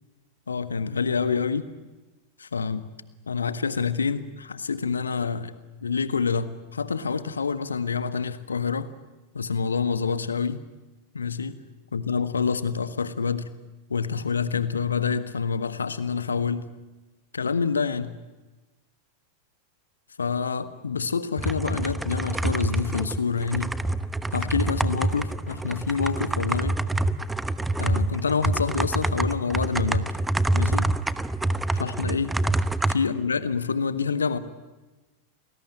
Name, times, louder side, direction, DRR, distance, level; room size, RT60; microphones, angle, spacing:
voice 1, 0.5-1.7 2.4-2.9 3.3-5.5 5.8-8.9 9.3-10.6 11.1-11.6 11.9-13.5 13.9-16.7 17.3-18.2 20.2-23.7 24.3-26.8 27.8-30.1 30.5-30.9 31.7-32.4 32.9-34.4, left 5 dB, 75° left, 13 dB, 1.5 m, -27 dB
sound 1, 21.4-32.9, right 2 dB, 5° right, 1.0 m, -26 dB
29.5 x 20.5 x 9.0 m, 1.1 s
figure-of-eight pair, 90°, 0 cm